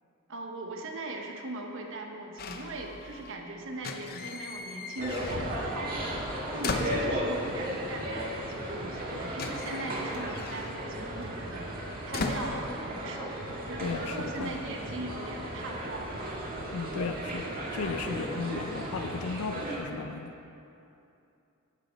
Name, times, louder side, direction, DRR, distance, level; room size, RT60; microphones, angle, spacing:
voice 1, 0.3-6.1 6.5-11.7 12.1-16.2, right 2 dB, 65° right, 2 dB, 1.1 m, -40 dB
sound 1, 2.4-3.4 3.7-5.7 6.0-7.6 8.6-8.7 8.9-13.3 13.6-14.1, left 3 dB, 45° left, 0.7 m, -38 dB
sound 2, 5.0-19.8, equal, 45° right, 1.8 m, -35 dB
voice 2, 13.8-14.5 16.7-20.3, left 5 dB, 85° left, 7 dB, 0.4 m, -35 dB
14.5 x 6.1 x 5.1 m, 2.7 s
head